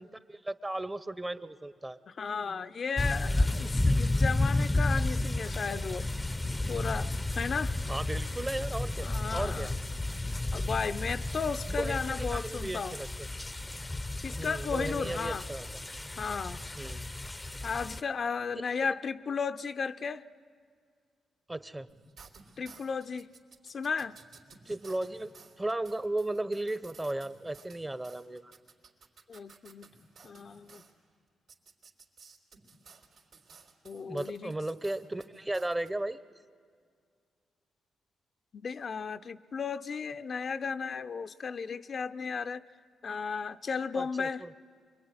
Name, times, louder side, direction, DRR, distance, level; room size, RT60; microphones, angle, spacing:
voice 1, 0.0-2.0 7.9-9.7 11.8-13.3 14.4-15.7 16.8-17.0 18.8-18.9 21.5-21.9 24.7-25.3 25.6-28.5 34.0-36.2 43.9-44.5, right 1 dB, 20° right, 15 dB, 0.9 m, -35 dB
voice 2, 2.1-6.1 6.7-7.8 9.0-9.8 10.5-13.0 14.2-15.4 16.2-16.6 17.6-20.2 22.6-23.3 23.6-24.2 29.3-29.9 30.2-30.8 33.8-34.5 38.5-42.6 43.0-44.4, left 5 dB, 55° left, 10 dB, 0.7 m, -34 dB
sound 1, 3.0-18.0, left 2 dB, 20° left, 0.7 m, -32 dB
sound 2, 21.9-30.9 31.5-35.9, right 4 dB, 75° right, 3.7 m, -55 dB
26.0 x 22.5 x 9.6 m, 2.1 s
supercardioid pair, 60°, 0 cm